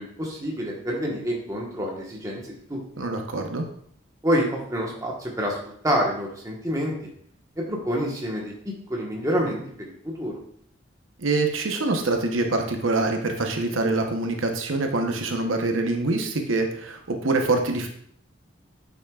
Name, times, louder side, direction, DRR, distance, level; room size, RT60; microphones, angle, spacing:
voice 1, 0.0-2.8 4.2-5.6 5.8-6.9 7.6-8.5 8.9-9.6 10.0-10.4, equal, 15° right, -2 dB, 1.2 m, -27 dB
voice 2, 3.0-3.7 11.2-17.9, right 2 dB, 90° right, 4 dB, 0.9 m, -25 dB
8.5 x 6.2 x 2.4 m, 0.62 s
head